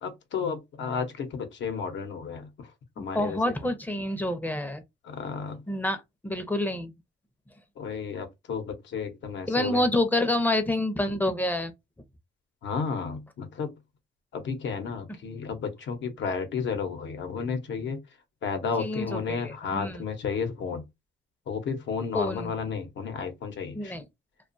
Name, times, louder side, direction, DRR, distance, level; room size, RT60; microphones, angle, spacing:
voice 1, 0.0-2.7 3.0-3.4 5.0-5.6 7.8-9.9 12.6-13.7 14.3-18.0 18.4-20.8 21.5-23.9, left 6 dB, 65° left, 0.8 m, -32 dB
voice 2, 3.0-4.8 5.7-6.9 9.5-11.7 18.8-20.0 22.1-22.5 23.7-24.0, left 1 dB, 10° left, 0.6 m, -28 dB
2.5 x 2.3 x 2.5 m
cardioid pair, 90°, 20 cm